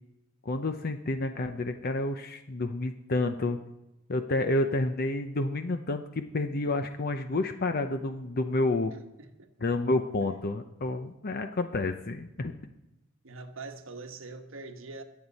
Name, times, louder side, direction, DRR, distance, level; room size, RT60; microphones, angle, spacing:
voice 1, 0.4-3.6 4.1-8.9 9.6-12.6, left 2 dB, 50° left, 0.7 m, -29 dB
voice 2, 9.2-9.7 13.2-15.0, right 3 dB, 75° right, 1.2 m, -43 dB
23.0 x 8.1 x 4.1 m
head